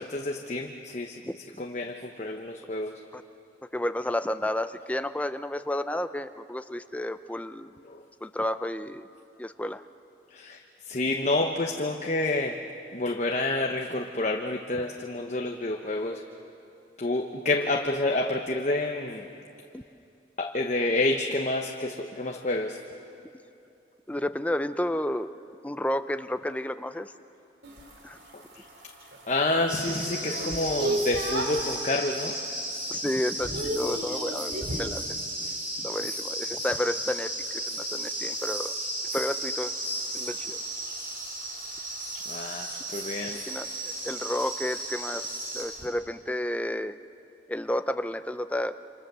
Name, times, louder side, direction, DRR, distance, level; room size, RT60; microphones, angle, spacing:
voice 1, 0.0-1.2 1.6-2.9 7.8-8.0 10.3-12.6 12.9-16.2 17.0-19.3 20.4-22.8 28.3-28.6 29.3-32.4 42.3-43.4, left 2 dB, 40° left, 3 dB, 1.0 m, -29 dB
voice 2, 1.3-1.6 3.1-3.2 3.7-7.7 8.2-9.1 9.4-9.8 19.7-19.8 24.1-25.3 25.6-27.1 28.0-28.2 32.9-35.0 35.8-38.7 39.1-39.7 40.1-40.6 43.2-47.0 47.5-48.8, left 1 dB, 10° left, 10 dB, 0.6 m, -31 dB
sound 1, 27.6-31.7 32.2-32.6 32.9-35.0 37.5-45.9, right 1 dB, 70° right, 3.4 m, -38 dB
sound 2, 29.7-45.6, right 1 dB, 50° right, 7.7 m, -34 dB
27.5 x 26.5 x 6.9 m, 2.7 s
head